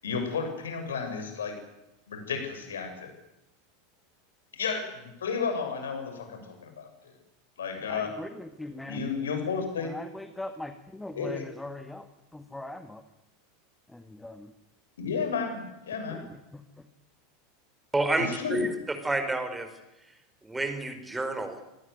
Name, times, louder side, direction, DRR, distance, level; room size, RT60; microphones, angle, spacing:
voice 1, 0.0-1.6 2.1-3.1 4.5-6.9 7.6-8.1 8.9-9.9 11.2-11.5 15.0-16.3 18.2-18.7, left 5 dB, 70° left, 6 dB, 7.2 m, -32 dB
voice 2, 7.9-9.1 9.8-12.1 12.3-13.0 13.9-14.5 16.1-16.2 16.5-16.6, left 2 dB, 5° left, 8 dB, 1.8 m, -40 dB
voice 3, 17.9-19.7 20.4-21.6, right 2 dB, 10° right, 9 dB, 4.8 m, -29 dB
25.5 x 19.5 x 9.6 m, 0.92 s
figure-of-eight pair, 85°, 0 cm